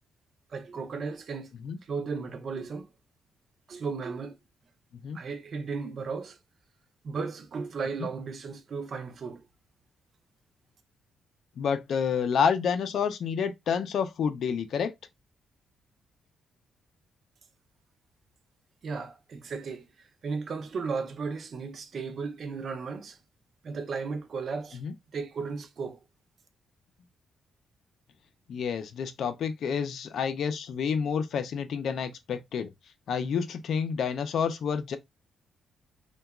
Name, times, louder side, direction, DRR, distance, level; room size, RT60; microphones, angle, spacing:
voice 1, 0.5-1.5 1.8-2.9 3.7-4.4 5.1-6.4 7.0-9.4 18.8-19.9 20.2-23.2 23.6-24.8 25.1-26.0, right 5 dB, 50° right, 0.5 m, -35 dB
voice 2, 11.6-14.9 24.7-24.9 28.5-32.7 33.1-35.0, left 6 dB, 65° left, 0.4 m, -29 dB
2.8 x 2.2 x 2.3 m
cardioid pair, 125°, 0 cm